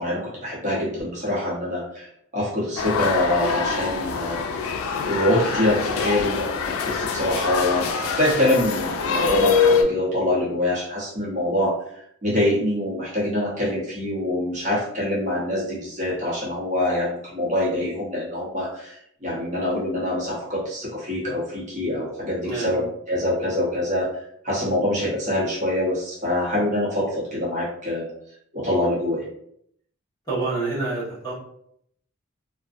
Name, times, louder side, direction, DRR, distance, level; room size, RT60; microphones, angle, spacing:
voice 1, 0.0-2.1 2.3-4.4 5.1-11.8 12.2-18.9 19.2-24.1 24.4-28.1 28.5-29.2, left 1 dB, 35° right, -6 dB, 0.8 m, -25 dB
sound 1, 2.8-9.8, left 5 dB, 80° left, 0.3 m, -24 dB
voice 2, 22.4-22.7 30.3-31.3, right 3 dB, 20° left, -8 dB, 1.0 m, -27 dB
2.5 x 2.1 x 2.4 m, 0.69 s
head